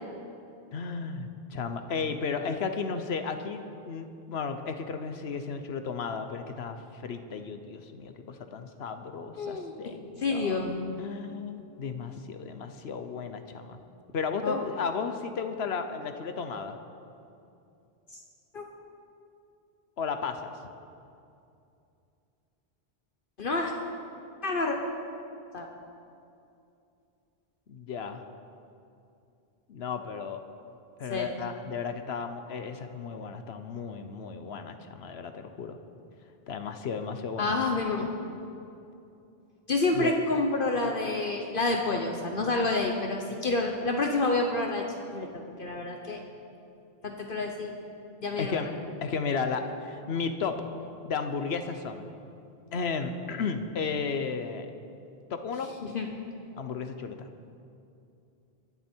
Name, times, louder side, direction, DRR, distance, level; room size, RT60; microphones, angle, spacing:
voice 1, 0.7-10.7 11.0-13.8 14.1-16.8 20.0-20.5 27.7-28.2 29.7-30.4 31.0-35.8 36.5-37.6 39.9-40.1 48.4-48.7 49.0-50.6 51.0-52.1 52.7-54.7 55.3-55.7 56.6-57.3, left 5 dB, 85° left, 8 dB, 1.1 m, -34 dB
voice 2, 9.4-9.7 10.2-10.7 14.4-14.6 18.5-18.6 23.4-23.7 24.4-24.8 25.5-25.7 31.1-31.3 37.4-38.1 39.7-44.8 45.1-46.2 47.0-47.8 48.2-48.6 55.8-56.3, left 3 dB, 60° left, 2 dB, 1.2 m, -28 dB
23.0 x 11.0 x 4.5 m, 2.6 s
omnidirectional pair, 1.0 m